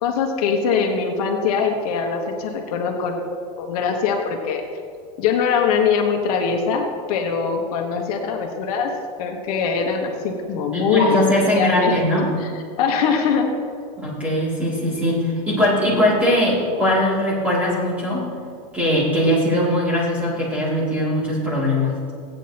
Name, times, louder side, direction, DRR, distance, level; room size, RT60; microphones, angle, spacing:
voice 1, 0.0-3.2 3.6-4.6 5.2-8.9 9.2-11.2 11.5-12.0 12.4-12.5 12.8-13.5, left 6 dB, 70° left, 2 dB, 1.2 m, -22 dB
voice 2, 10.7-12.3 14.0-18.3 18.7-21.9, left 1 dB, 5° right, -8 dB, 2.5 m, -20 dB
15.0 x 9.1 x 2.9 m, 2.3 s
supercardioid pair, 175°, 20 cm